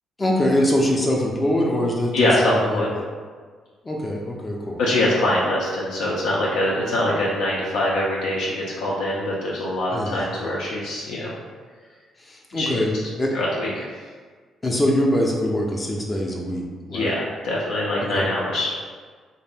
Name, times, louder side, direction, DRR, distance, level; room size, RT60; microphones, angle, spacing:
voice 1, 0.2-3.1 3.8-4.8 9.9-10.2 12.2-13.3 14.6-17.1 18.1-18.3, left 1 dB, 25° left, -2 dB, 0.4 m, -23 dB
voice 2, 2.1-2.9 4.8-11.3 12.5-12.7 13.3-13.9 16.9-18.7, left 1 dB, 85° left, -5 dB, 0.4 m, -23 dB
2.5 x 2.1 x 3.4 m, 1.6 s
cardioid pair, 90°, 0 cm